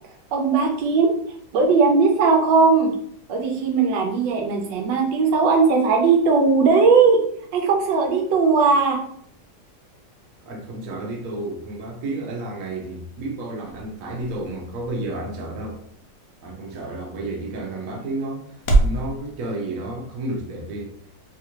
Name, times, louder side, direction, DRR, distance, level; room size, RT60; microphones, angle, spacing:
voice 1, 0.3-1.1 1.5-2.9 3.3-7.2 7.5-9.0, right 4 dB, 80° right, 1.3 m, -18 dB
voice 2, 10.4-15.8 16.4-20.9, right 2 dB, 60° right, 0.9 m, -31 dB
sound 1, 12.8-19.0, right 2 dB, 85° left, 0.6 m, -28 dB
3.4 x 2.4 x 2.9 m
omnidirectional pair, 2.0 m